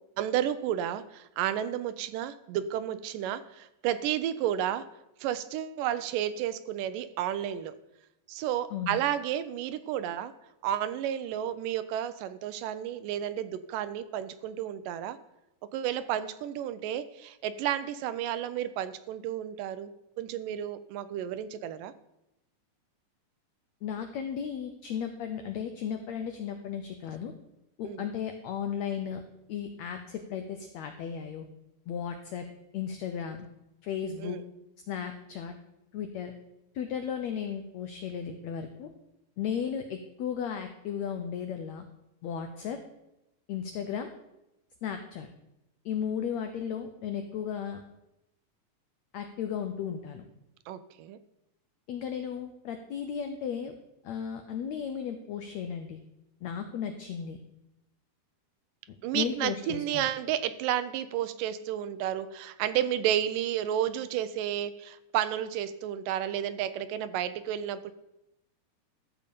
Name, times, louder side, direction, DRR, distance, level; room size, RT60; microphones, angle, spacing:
voice 1, 0.2-4.8 5.2-7.7 8.3-10.3 10.6-15.2 15.7-19.9 20.2-21.9 27.8-28.1 34.2-34.4 50.7-51.2 59.0-67.9, right 11 dB, 80° right, 12 dB, 2.1 m, -31 dB
voice 2, 23.8-27.3 27.8-29.2 29.5-31.5 31.9-32.4 32.7-33.5 33.8-34.4 34.9-35.5 35.9-36.3 36.7-38.9 39.4-41.8 42.2-42.8 43.5-44.1 44.8-45.3 45.8-47.8 49.1-50.2 51.9-53.7 54.0-56.0 56.4-57.4 59.1-60.1, left 8 dB, 85° left, 6 dB, 1.6 m, -35 dB
13.5 x 7.0 x 5.1 m, 0.90 s
omnidirectional pair, 4.0 m